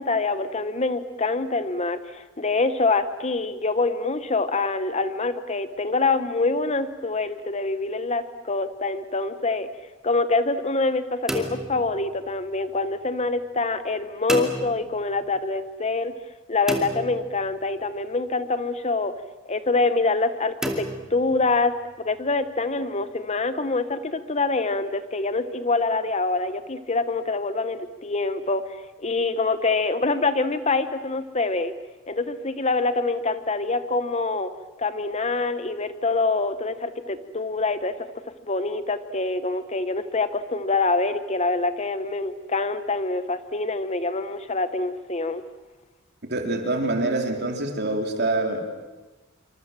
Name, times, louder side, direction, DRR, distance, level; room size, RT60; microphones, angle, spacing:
voice 1, 0.0-9.7 10.0-16.1 16.5-19.1 19.4-31.7 32.1-34.5 34.8-37.9 38.5-45.4, left 3 dB, 30° left, 12 dB, 1.0 m, -25 dB
sound 1, 11.3-12.6 14.3-15.3 16.7-17.9 20.6-21.8, equal, ahead, 2.5 m, -32 dB
voice 2, 46.3-48.6, right 2 dB, 45° right, 4 dB, 3.6 m, -25 dB
27.0 x 25.5 x 7.6 m, 1.1 s
head